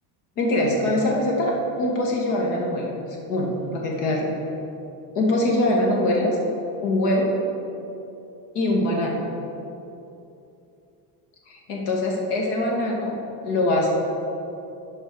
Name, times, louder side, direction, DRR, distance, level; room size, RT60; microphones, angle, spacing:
voice 1, 0.4-2.9 3.3-4.3 5.2-6.4 6.8-7.3 8.5-9.2 11.5-13.1 13.4-13.9, left 1 dB, 70° left, -1 dB, 1.8 m, -23 dB
7.8 x 4.4 x 6.2 m, 2.8 s
cardioid pair, 150°, 45 cm